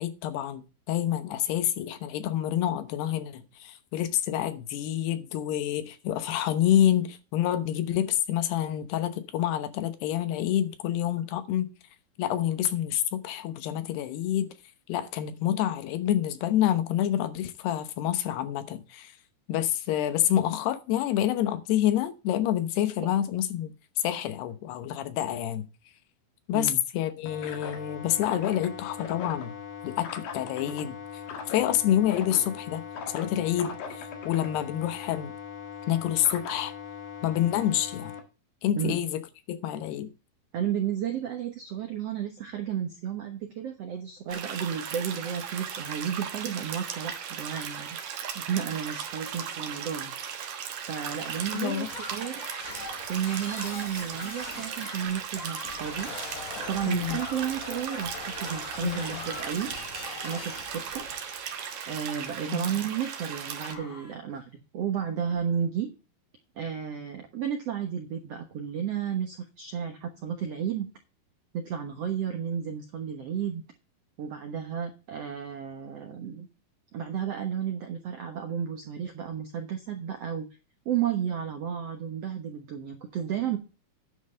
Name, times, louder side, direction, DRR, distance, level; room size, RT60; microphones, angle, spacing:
voice 1, 0.0-11.7 12.2-14.5 14.9-19.1 19.5-25.7 26.5-29.5 29.8-31.0 31.5-35.3 35.9-36.7 37.2-38.1 38.6-39.2 39.5-40.1 51.5-51.9 56.9-57.2 58.8-59.2 62.5-62.6, left 11 dB, 85° left, 3.1 m, -28 dB
sound 1, 27.3-38.2, left 6 dB, 65° left, 3.3 m, -40 dB
voice 2, 40.5-50.2 50.9-52.4 53.1-56.1 56.7-59.9 60.2-61.1 61.9-65.9 66.6-70.9 71.5-73.6 74.2-76.5 76.9-80.5 80.8-83.6, right 8 dB, 75° right, 1.4 m, -32 dB
sound 2, 44.3-63.7, right 8 dB, 60° right, 2.3 m, -37 dB
Shatter, 51.2-63.3 63.6-64.2 65.2-65.3, left 3 dB, 45° left, 4.3 m, -42 dB
10.5 x 5.6 x 6.5 m
omnidirectional pair, 4.6 m